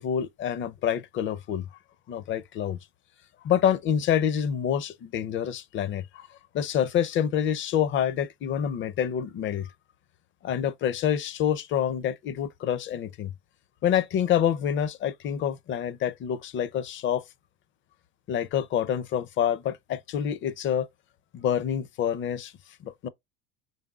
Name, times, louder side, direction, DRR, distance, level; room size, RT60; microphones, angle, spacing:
voice 1, 0.0-1.6 2.1-2.8 3.4-6.3 6.5-9.7 10.4-13.3 13.8-17.2 18.3-20.9 21.3-22.5 22.8-23.1, left 9 dB, 35° left, 0.5 m, -27 dB
4.0 x 3.4 x 2.3 m
hypercardioid pair, 85°, 34 cm